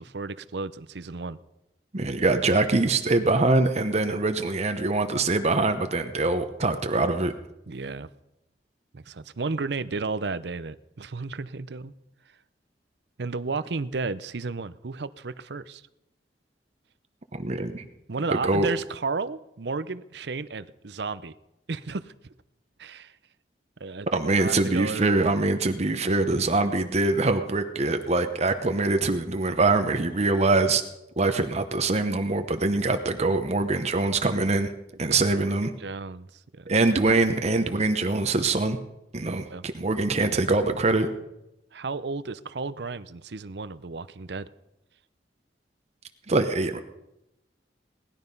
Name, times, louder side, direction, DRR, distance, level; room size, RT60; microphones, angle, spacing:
voice 1, 0.0-1.4 7.7-8.1 8.9-11.9 13.2-15.8 18.1-21.3 21.7-22.1 22.8-23.1 23.8-24.1 24.4-25.1 30.7-30.8 35.0-35.5 35.8-36.3 36.5-36.7 39.5-39.6 41.7-44.5, right 4 dB, 65° right, 15 dB, 0.7 m, -33 dB
voice 2, 1.9-7.3 17.3-17.8 18.3-18.7 24.1-30.8 31.2-34.7 35.0-35.7 36.7-38.8 39.1-41.1 46.3-46.8, right 3 dB, 40° right, 7 dB, 0.9 m, -23 dB
19.0 x 12.0 x 5.4 m, 0.90 s
head